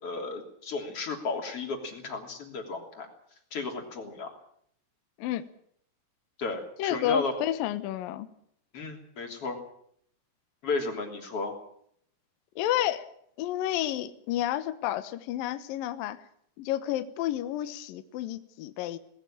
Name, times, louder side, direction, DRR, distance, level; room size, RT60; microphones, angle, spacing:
voice 1, 0.0-3.1 3.5-4.3 6.4-7.3 8.7-9.6 10.6-11.6, left 3 dB, 35° left, 3 dB, 3.4 m, -33 dB
voice 2, 6.8-8.3 12.6-13.1 13.4-16.2 16.6-19.0, left 13 dB, 90° left, 11 dB, 2.0 m, -30 dB
19.0 x 18.0 x 8.7 m, 0.67 s
omnidirectional pair, 5.8 m